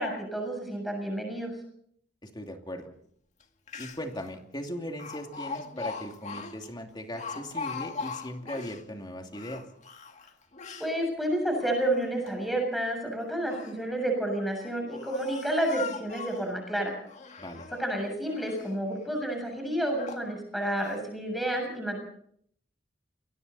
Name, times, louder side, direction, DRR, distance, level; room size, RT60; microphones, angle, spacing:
voice 1, 0.0-1.5 10.8-16.9 17.8-22.0, right 1 dB, ahead, 2 dB, 7.2 m, -30 dB
voice 2, 2.2-2.9 3.8-9.6 17.4-17.7, left 1 dB, 25° left, 4 dB, 2.6 m, -38 dB
Speech, 3.4-3.5 3.7-4.2 5.0-8.8 9.3-10.9 11.5-12.3 13.2-13.8 14.5-16.5 17.1-17.9 18.3-18.8 19.3-19.4 20.0-20.3 20.8-21.0, left 4 dB, 40° left, 1.9 m, -40 dB
28.5 x 21.5 x 4.2 m, 0.65 s
head